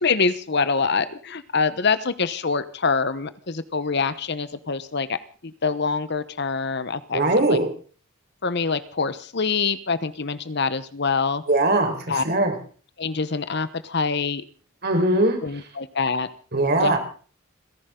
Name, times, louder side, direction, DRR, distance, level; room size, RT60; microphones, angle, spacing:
voice 1, 0.0-7.2 7.5-7.6 8.4-11.4 12.1-12.2 13.0-14.4 15.4-16.3 16.8-17.0, left 4 dB, 55° left, 14 dB, 1.0 m, -25 dB
voice 2, 7.1-7.7 11.5-12.5 14.8-15.4 16.5-17.0, right 2 dB, 50° right, 4 dB, 4.6 m, -20 dB
30.0 x 11.0 x 3.8 m, 0.41 s
head